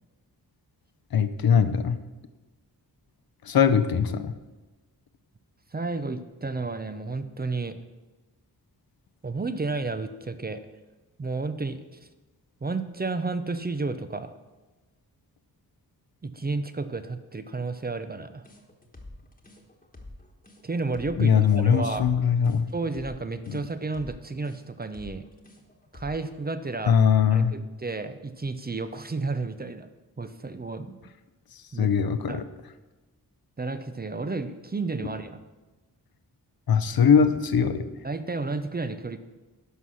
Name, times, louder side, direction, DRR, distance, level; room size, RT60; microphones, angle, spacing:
voice 1, 1.1-2.0 3.4-4.4 21.2-22.7 23.5-23.6 26.9-27.6 31.8-32.4 36.7-37.9, left 7 dB, 70° left, 9 dB, 0.7 m, -21 dB
voice 2, 5.7-7.8 9.2-10.6 11.2-12.1 12.6-14.3 16.2-18.5 20.6-21.3 21.6-22.1 22.7-25.2 25.9-27.0 27.3-29.9 30.2-31.0 31.7-31.9 32.3-32.4 33.6-35.4 38.0-39.2, right 3 dB, 25° right, 10 dB, 0.5 m, -32 dB
sound 1, 18.4-26.3, left 2 dB, 20° left, 1.3 m, -47 dB
11.0 x 5.8 x 6.2 m, 1.2 s
wide cardioid pair, 135°, 37 cm